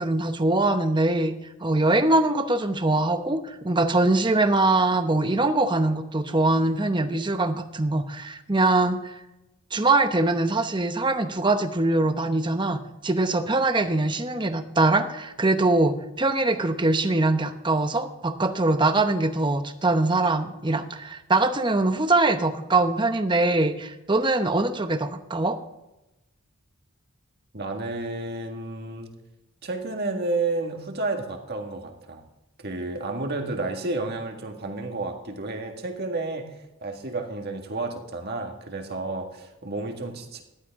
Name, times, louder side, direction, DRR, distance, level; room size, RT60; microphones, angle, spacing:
voice 1, 0.0-1.3 1.6-9.2 9.7-25.6, right 2 dB, 20° right, 8 dB, 0.9 m, -23 dB
voice 2, 27.5-29.1 29.6-32.2 32.6-40.4, right 2 dB, 45° right, 3 dB, 1.8 m, -31 dB
15.0 x 11.5 x 3.7 m, 0.96 s
head